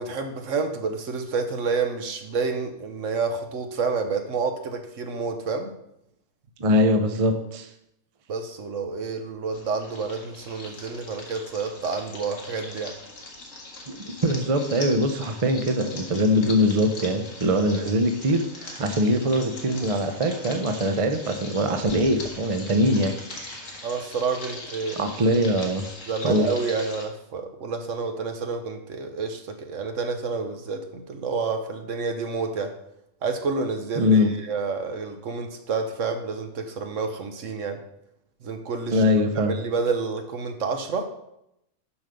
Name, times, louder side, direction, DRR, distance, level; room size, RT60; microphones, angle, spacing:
voice 1, 0.0-5.7 8.3-12.9 17.8-17.9 23.8-25.0 26.1-32.7 33.2-37.8 38.4-39.0 39.5-41.0, right 4 dB, 65° right, 6 dB, 1.2 m, -29 dB
voice 2, 6.6-7.7 13.9-23.9 25.0-25.9 26.2-26.5 34.0-34.3 38.9-39.5, equal, 30° right, 6 dB, 0.7 m, -22 dB
sound 1, 9.5-27.0, left 2 dB, 60° left, 1.8 m, -41 dB
7.2 x 6.2 x 5.2 m, 0.80 s
omnidirectional pair, 1.5 m